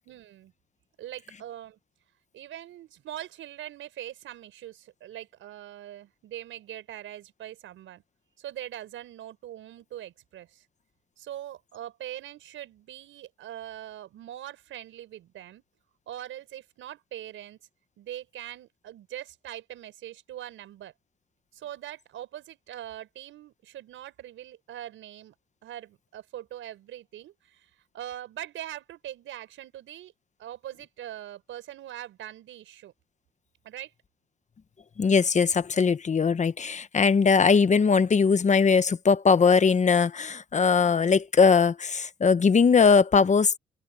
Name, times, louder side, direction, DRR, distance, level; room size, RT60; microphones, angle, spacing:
voice 1, 0.0-0.5 1.0-1.8 2.3-8.0 8.4-10.6 11.2-15.6 16.1-17.6 18.0-20.9 21.5-25.3 25.6-30.1 30.4-32.9 33.6-33.9, right 12 dB, 80° right, 6.0 m, -42 dB
voice 2, 35.0-43.6, left 5 dB, 35° left, 1.3 m, -20 dB
cardioid pair, 90°, 20 cm